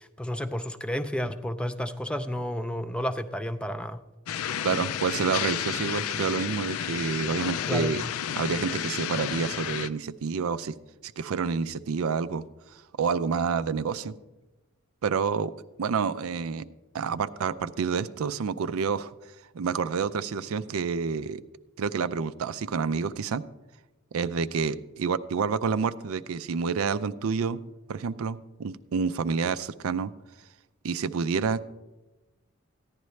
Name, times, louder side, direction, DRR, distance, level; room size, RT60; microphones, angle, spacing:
voice 1, 0.0-4.0 7.7-8.0, equal, 5° left, 10 dB, 0.3 m, -31 dB
sound 1, 4.3-9.9, left 9 dB, 80° left, 0.4 m, -31 dB
voice 2, 4.6-8.0 8.4-10.7 11.0-12.4 12.7-14.1 15.0-15.5 15.8-16.7 16.9-19.1 19.5-21.4 21.8-23.4 24.1-27.6 27.9-30.1 30.8-31.6, right 5 dB, 75° right, 13 dB, 0.4 m, -28 dB
14.5 x 10.5 x 3.2 m, 1.1 s
head